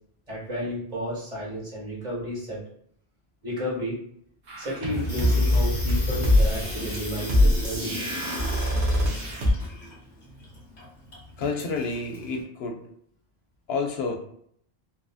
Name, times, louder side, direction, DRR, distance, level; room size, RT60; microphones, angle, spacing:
voice 1, 0.3-2.6 3.4-4.0 4.6-8.1, equal, 45° right, -7 dB, 1.6 m, -32 dB
sound 1, 4.5-9.5, left 1 dB, 75° right, 1.0 m, -23 dB
Water tap faucet / Sink (filling or washing), 4.8-12.4, left 1 dB, 45° left, 1.1 m, -37 dB
voice 2, 11.4-12.9 13.7-14.1, left 4 dB, 85° left, 2 dB, 0.8 m, -29 dB
3.1 x 2.5 x 2.4 m, 0.65 s
omnidirectional pair, 1.0 m